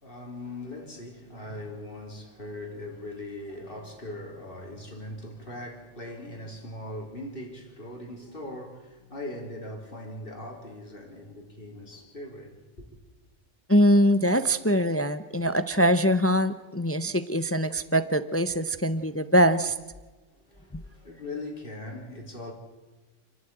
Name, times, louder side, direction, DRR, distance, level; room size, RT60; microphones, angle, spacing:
voice 1, 0.0-12.6 20.3-22.5, left 1 dB, 45° left, 4.2 m, -40 dB
voice 2, 13.7-19.8, equal, 15° left, 0.5 m, -23 dB
29.5 x 11.5 x 9.0 m
omnidirectional pair, 1.3 m